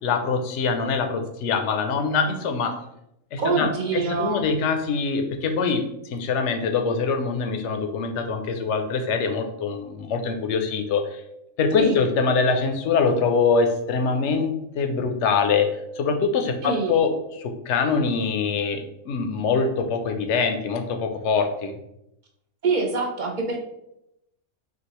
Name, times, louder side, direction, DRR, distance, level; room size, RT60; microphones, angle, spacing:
voice 1, 0.0-2.8 3.3-11.2 11.6-15.7 16.0-21.8, left 5 dB, 60° left, 6 dB, 0.9 m, -24 dB
voice 2, 3.4-4.5 11.8-12.0 16.6-17.0 22.6-23.6, right 4 dB, 45° right, 0 dB, 0.7 m, -25 dB
6.3 x 2.4 x 3.0 m, 0.81 s
omnidirectional pair, 1.5 m